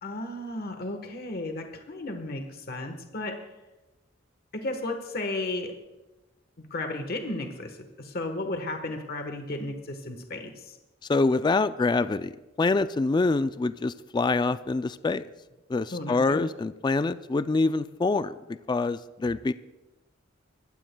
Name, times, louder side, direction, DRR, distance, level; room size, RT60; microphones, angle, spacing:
voice 1, 0.0-3.4 4.5-5.7 6.6-10.8 15.9-16.5, left 2 dB, 50° left, 5 dB, 1.2 m, -34 dB
voice 2, 11.1-12.3 12.6-15.2 15.7-19.5, left 3 dB, 20° left, 13 dB, 0.3 m, -25 dB
22.0 x 15.0 x 2.2 m, 1.1 s
head